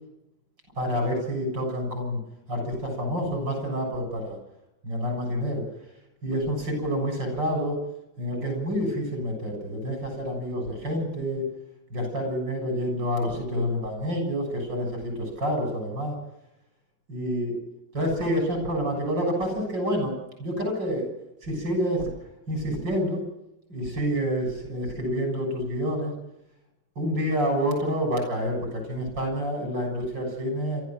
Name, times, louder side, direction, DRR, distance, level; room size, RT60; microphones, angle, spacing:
voice 1, 0.7-2.2 2.5-4.4 4.8-5.6 6.2-7.8 8.2-11.5 11.9-16.2 17.1-17.5 17.9-20.1 20.4-21.1 21.4-22.1 22.5-23.2 23.7-26.1 27.0-30.8, equal, 75° right, 3 dB, 8.1 m, -28 dB
27.0 x 14.0 x 7.7 m, 0.87 s
omnidirectional pair, 2.0 m